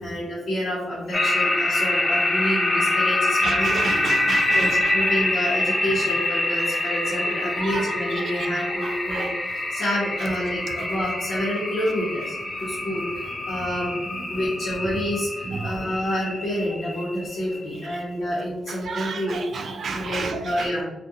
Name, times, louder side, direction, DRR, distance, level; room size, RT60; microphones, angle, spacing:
voice 1, 0.0-3.9 4.5-9.3 9.5-14.0 14.3-19.4 19.9-20.8, equal, 50° left, -7 dB, 0.7 m, -28 dB
sound 1, 1.1-17.9, left 2 dB, 20° left, 0.4 m, -25 dB
voice 2, 3.4-4.9 7.7-7.8 8.4-8.5 8.8-9.3 15.6-15.7 18.9-20.7, right 4 dB, 50° right, 6 dB, 0.3 m, -31 dB
2.3 x 2.1 x 2.8 m, 1.1 s
cardioid pair, 115°, 0 cm